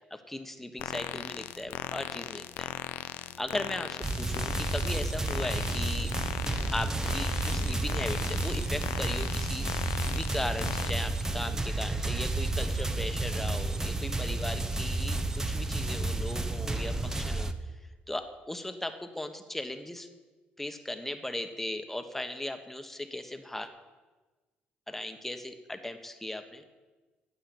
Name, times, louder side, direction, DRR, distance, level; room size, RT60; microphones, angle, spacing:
voice 1, 0.1-2.7 3.4-6.1 6.7-9.8 10.1-17.7 18.1-20.1 20.6-23.7 24.9-26.6, left 1 dB, 5° left, 7 dB, 1.2 m, -37 dB
sound 1, 0.8-10.9, left 14 dB, 85° left, 0.5 m, -38 dB
sound 2, 4.0-17.5, right 2 dB, 15° right, 0.9 m, -31 dB
9.9 x 8.6 x 8.6 m, 1.3 s
cardioid pair, 90°, 4 cm